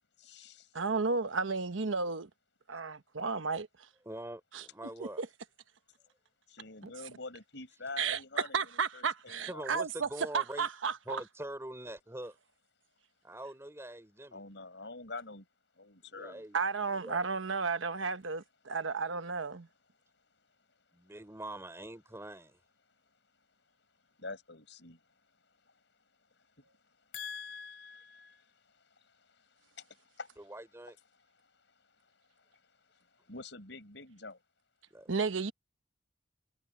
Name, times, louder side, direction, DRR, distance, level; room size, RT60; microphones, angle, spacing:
voice 1, 0.2-0.6 6.5-9.7 14.3-15.5 15.8-16.4 24.2-25.0 25.6-25.7 26.6-26.7 27.1-30.4 32.0-32.1 32.9-34.4, left 3 dB, 65° left, 6.1 m, -46 dB
voice 2, 0.7-2.3 2.7-3.7 4.5-4.6 5.2-5.3 8.0-8.2 8.5-10.1 10.3-11.2 16.5-19.7 35.1-35.5, right 4 dB, 90° right, 1.1 m, -33 dB
voice 3, 4.1-5.2 9.5-10.7 11.1-12.4 13.2-14.4 16.0-16.6 16.9-17.2 20.9-22.6 30.4-31.0 34.9-35.1, right 1 dB, 15° right, 4.2 m, -44 dB
head